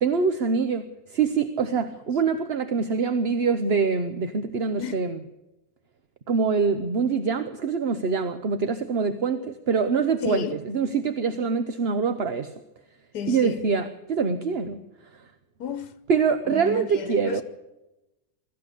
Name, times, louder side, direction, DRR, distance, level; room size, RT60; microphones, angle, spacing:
voice 1, 0.0-5.2 6.3-12.5 13.3-14.8 15.1-15.2 16.1-17.4, right 5 dB, 45° right, 1.1 m, -24 dB
voice 2, 10.2-10.6 13.1-13.6 15.6-15.9 16.5-17.4, left 8 dB, 75° left, 1.4 m, -32 dB
22.5 x 14.0 x 8.4 m
omnidirectional pair, 1.7 m